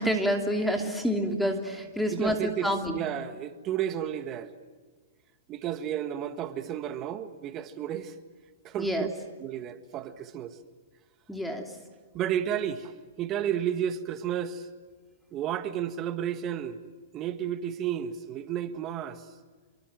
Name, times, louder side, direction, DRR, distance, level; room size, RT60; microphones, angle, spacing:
voice 1, 0.0-3.0 8.8-9.1 11.3-11.7, equal, ahead, 2.8 m, -28 dB
voice 2, 2.1-4.5 5.5-8.1 8.6-9.1 9.4-10.6 12.1-14.7 15.3-16.9 17.1-19.3, right 10 dB, 30° right, 1.7 m, -32 dB
28.0 x 24.5 x 7.6 m
hypercardioid pair, 125°, 0 cm